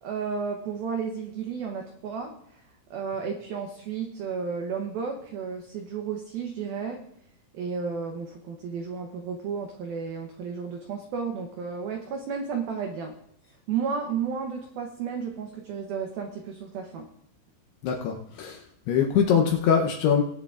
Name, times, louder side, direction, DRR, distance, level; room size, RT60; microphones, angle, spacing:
voice 1, 0.0-2.6 2.9-7.0 7.5-13.1 13.7-17.1, right 6 dB, 85° right, 3 dB, 2.1 m, -32 dB
voice 2, 17.8-18.6 18.9-20.2, left 7 dB, 80° left, 2 dB, 2.4 m, -23 dB
19.0 x 10.5 x 2.4 m, 0.74 s
omnidirectional pair, 5.6 m